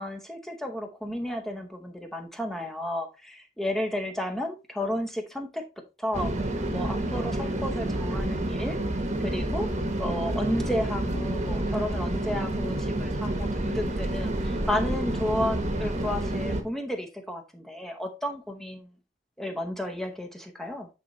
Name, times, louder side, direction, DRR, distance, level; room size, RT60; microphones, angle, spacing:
voice 1, 0.0-5.6 6.0-6.4 6.7-9.7 10.0-18.9 19.4-20.9, left 1 dB, ahead, 0.7 m, -32 dB
sound 1, 6.1-16.6, right 1 dB, 35° right, 1.1 m, -29 dB
8.9 x 4.3 x 3.0 m
head